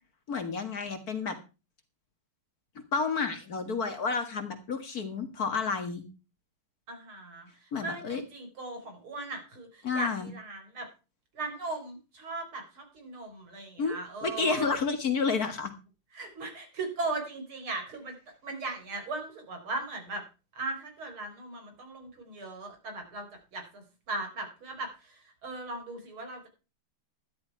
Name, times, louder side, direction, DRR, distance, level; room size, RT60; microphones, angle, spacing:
voice 1, 0.3-1.4 2.9-6.0 7.7-8.2 9.8-10.3 13.8-14.0 14.2-15.7, left 5 dB, 45° left, 8 dB, 2.1 m, -30 dB
voice 2, 6.9-10.9 11.3-14.7 16.1-18.2 18.4-20.2 20.5-26.5, right 3 dB, 75° right, 5 dB, 4.8 m, -38 dB
13.0 x 11.5 x 4.6 m, 0.31 s
omnidirectional pair, 2.3 m